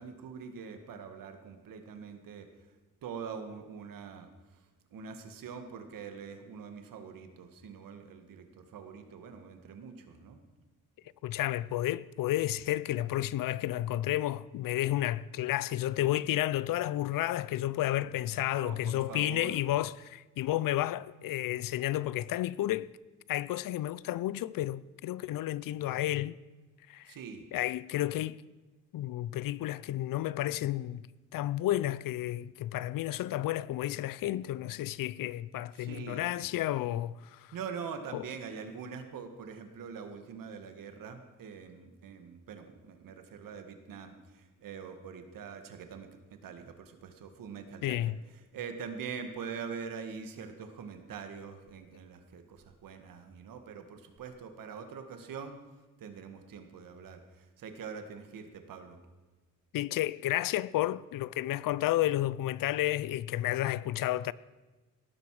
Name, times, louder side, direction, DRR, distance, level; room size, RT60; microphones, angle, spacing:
voice 1, 0.0-2.7 3.0-10.4 18.4-19.6 27.1-27.4 35.8-36.3 37.5-48.0 48.3-55.5 56.0-59.0, right 6 dB, 80° right, 1.8 m, -44 dB
voice 2, 11.2-22.9 23.3-26.4 26.9-27.1 27.5-28.4 28.9-31.1 31.3-37.5 38.1-38.2 47.8-48.2 59.7-64.3, left 14 dB, 80° left, 0.5 m, -31 dB
17.5 x 13.5 x 4.9 m
cardioid pair, 110°, 33 cm